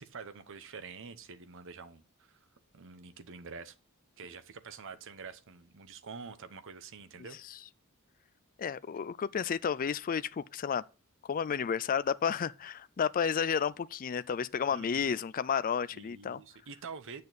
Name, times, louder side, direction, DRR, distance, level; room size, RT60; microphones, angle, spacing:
voice 1, 0.0-2.4 2.7-3.7 4.2-7.4 14.7-15.1 15.9-17.2, right 5 dB, 60° right, 0.9 m, -47 dB
voice 2, 8.6-10.8 11.3-16.4, left 7 dB, 40° left, 0.4 m, -31 dB
8.4 x 6.7 x 4.1 m
head